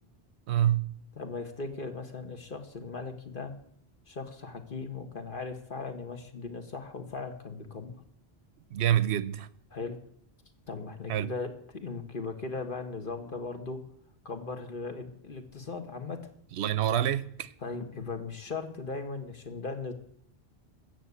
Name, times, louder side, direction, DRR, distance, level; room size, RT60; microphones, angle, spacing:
voice 1, 0.5-0.9 8.7-9.5 11.1-11.3 16.6-17.5, right 11 dB, 85° right, 1.0 m, -27 dB
voice 2, 1.2-3.5 4.1-7.9 9.7-10.0 10.7-13.8 14.3-16.2 17.6-19.9, left 4 dB, 55° left, 1.7 m, -38 dB
15.0 x 6.8 x 8.4 m
omnidirectional pair, 1.1 m